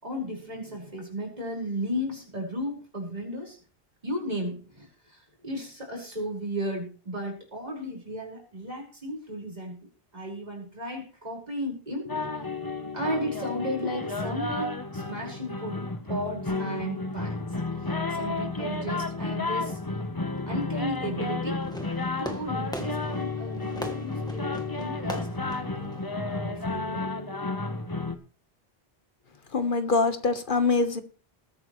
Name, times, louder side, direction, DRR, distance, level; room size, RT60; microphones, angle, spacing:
voice 1, 0.0-3.6 4.0-12.3 12.9-15.8 16.1-17.5 18.1-19.8 20.4-21.6 22.2-25.9 26.4-27.1, equal, 40° right, -2 dB, 5.3 m, -35 dB
sound 1, 12.1-28.1, left 3 dB, 20° left, 1.1 m, -32 dB
Fireworks, 21.6-26.7, equal, 5° left, 1.7 m, -40 dB
voice 2, 29.5-31.0, left 3 dB, 55° left, 9 dB, 1.5 m, -24 dB
20.5 x 9.0 x 3.2 m, 0.37 s
omnidirectional pair, 1.0 m